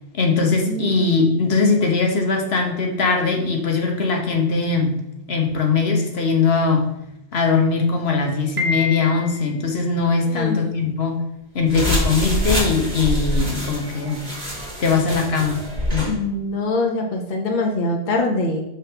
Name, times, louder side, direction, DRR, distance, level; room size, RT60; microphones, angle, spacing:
voice 1, 0.1-5.0 5.3-6.9 7.3-11.2 11.5-14.3 14.8-15.6 15.9-16.1, left 4 dB, 70° left, 2 dB, 1.3 m, -20 dB
voice 2, 0.7-1.0 10.3-10.7 16.1-18.6, left 2 dB, 50° left, 2 dB, 0.9 m, -23 dB
Piano, 8.6-9.6, left 4 dB, 70° right, 1.4 m, -26 dB
sound 1, 11.7-16.1, equal, 40° right, 2.1 m, -25 dB
6.2 x 5.8 x 3.5 m, 0.83 s
omnidirectional pair, 1.1 m